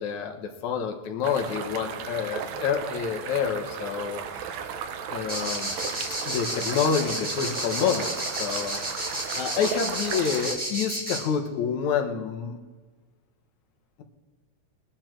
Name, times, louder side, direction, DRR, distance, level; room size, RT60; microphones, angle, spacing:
voice 1, 0.0-4.2 5.1-5.8 6.3-8.9 9.4-12.6, left 7 dB, 80° left, 5 dB, 2.5 m, -28 dB
sound 1, 1.2-10.6, right 7 dB, 75° right, 2.1 m, -35 dB
sound 2, 5.3-11.2, right 1 dB, 5° right, 4.2 m, -31 dB
20.0 x 9.6 x 4.5 m, 1.4 s
omnidirectional pair, 3.3 m